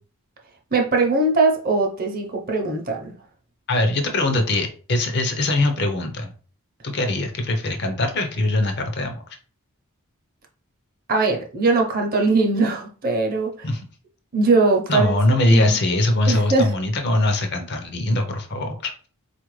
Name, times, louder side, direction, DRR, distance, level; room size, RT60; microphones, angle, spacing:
voice 1, 0.7-3.1 11.1-13.5 14.3-15.2 15.5-15.8 16.3-16.7, right 3 dB, 40° right, 0.7 m, -20 dB
voice 2, 3.7-6.3 6.8-9.2 13.6-13.8 14.9-19.1, left 2 dB, 50° left, 0.6 m, -22 dB
4.1 x 2.5 x 3.1 m
head